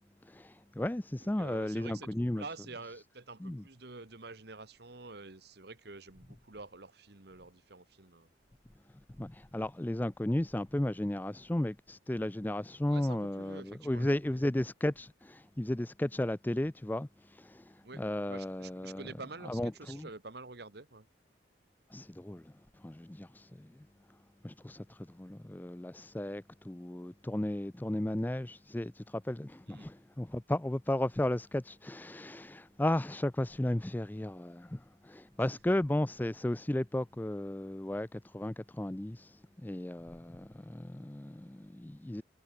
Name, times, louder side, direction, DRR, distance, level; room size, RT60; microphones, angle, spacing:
voice 1, 0.2-2.4 3.4-3.6 9.2-19.1 19.4-20.1 21.9-23.9 24.4-42.2, left 1 dB, 10° left, 0.4 m, -34 dB
voice 2, 1.2-8.3 12.9-14.4 17.8-21.1 29.7-29.9, right 3 dB, 55° right, 1.4 m, -48 dB
head